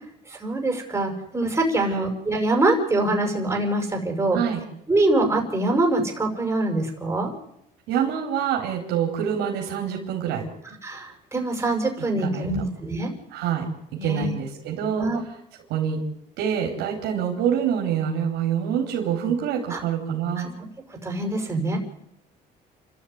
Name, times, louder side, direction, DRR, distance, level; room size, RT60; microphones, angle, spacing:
voice 1, 0.3-4.4 4.9-7.3 10.8-13.1 14.0-14.4 15.0-15.2 19.7-19.8 20.9-21.8, right 2 dB, 15° right, 2 dB, 6.3 m, -24 dB
voice 2, 7.9-10.5 12.2-12.6 13.3-13.7 14.0-15.1 15.7-16.0 16.4-20.5, right 8 dB, 90° right, 1 dB, 4.4 m, -26 dB
30.0 x 13.0 x 9.7 m, 0.80 s
cardioid pair, 110°, 17 cm